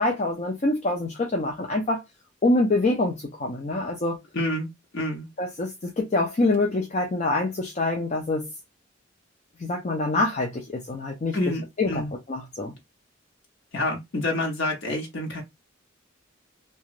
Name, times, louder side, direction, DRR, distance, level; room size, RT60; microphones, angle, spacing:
voice 1, 0.0-2.0 2.4-4.2 5.4-8.5 9.6-11.4 11.8-12.7, left 2 dB, 35° left, 0.5 m, -25 dB
voice 2, 4.3-4.7 4.9-5.3 11.3-12.1 13.7-15.4, left 1 dB, 65° left, 0.9 m, -28 dB
2.9 x 2.3 x 2.4 m
head